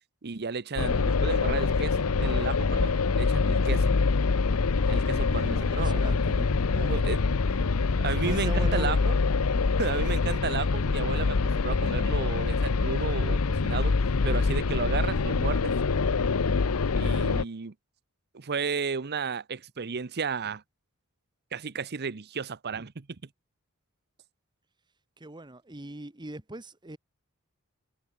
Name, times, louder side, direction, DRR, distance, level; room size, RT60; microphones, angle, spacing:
voice 1, 0.2-3.9 4.9-6.1 6.7-7.2 8.0-9.2 9.8-14.0 14.2-15.7 16.9-17.7 18.3-20.6 21.5-23.1, right 5 dB, 50° right, 0.8 m, -33 dB
sound 1, 0.8-17.4, left 4 dB, 90° left, 0.7 m, -25 dB
voice 2, 4.8-5.2 5.5-6.5 8.2-9.1 25.2-27.0, right 2 dB, 20° right, 1.3 m, -40 dB
head